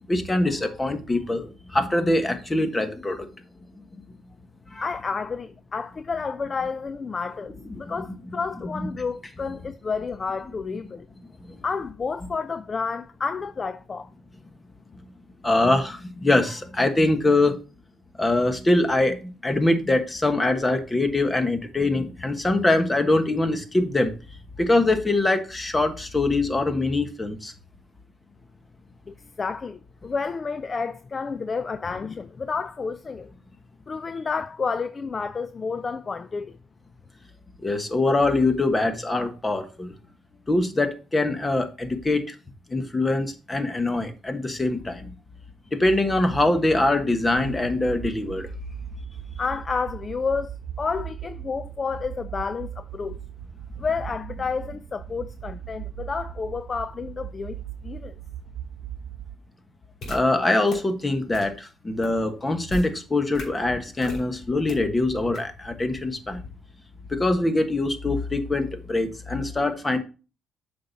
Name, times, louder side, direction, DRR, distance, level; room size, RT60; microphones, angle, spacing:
voice 1, 0.1-3.3 4.7-4.8 7.7-7.9 8.7-8.8 11.5-11.6 15.4-17.6 18.2-24.1 24.6-27.5 37.6-39.9 40.5-42.3 42.7-45.1 45.7-48.5 60.1-66.4 67.1-70.0, left 2 dB, 20° left, 1.3 m, -23 dB
voice 2, 4.8-11.1 11.6-14.1 29.1-33.3 33.9-36.6 49.4-53.2 53.8-58.2, left 5 dB, 35° left, 0.4 m, -30 dB
sound 1, 47.4-59.4, right 10 dB, 75° right, 0.6 m, -38 dB
sound 2, 60.0-60.2 60.7-60.8 61.3-61.4 62.0-62.1 62.7-62.9 63.3-63.4 64.0-64.2 64.7-64.8 65.3-65.4, left 1 dB, 60° left, 3.0 m, -33 dB
7.7 x 5.4 x 4.1 m
cardioid pair, 90°, 0 cm